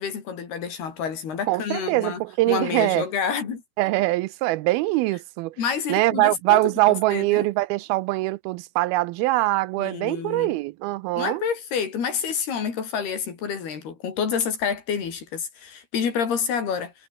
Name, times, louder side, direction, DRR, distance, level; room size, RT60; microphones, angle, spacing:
voice 1, 0.0-2.2 2.5-3.6 5.6-6.6 7.1-7.5 9.8-10.5 11.2-16.9, left 7 dB, 80° left, 6.0 m, -28 dB
voice 2, 1.5-3.1 3.8-5.6 5.9-11.4, right 19 dB, 80° right, 2.4 m, -23 dB
omnidirectional pair, 4.5 m